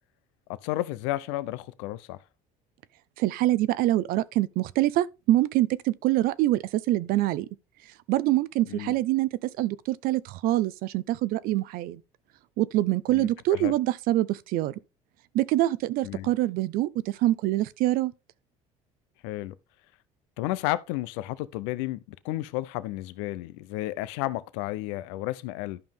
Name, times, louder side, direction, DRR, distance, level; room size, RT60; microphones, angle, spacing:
voice 1, 0.5-2.2 8.7-9.0 13.1-13.7 16.0-16.3 19.2-19.5 20.4-25.8, left 16 dB, 85° left, 0.6 m, -32 dB
voice 2, 3.2-7.5 8.1-12.0 12.6-14.7 15.3-18.1, right 15 dB, 70° right, 0.7 m, -25 dB
12.0 x 5.3 x 3.5 m
supercardioid pair, 80°, 15 cm